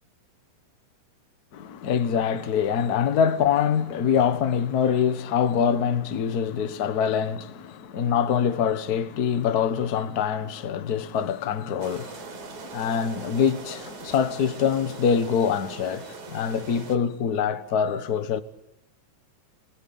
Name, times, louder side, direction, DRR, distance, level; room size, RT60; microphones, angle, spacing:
voice 1, 1.5-18.4, left 7 dB, 50° left, 1.2 m, -24 dB
sound 1, 11.8-17.0, right 5 dB, 70° right, 4.1 m, -41 dB
30.0 x 22.0 x 8.6 m
omnidirectional pair, 3.5 m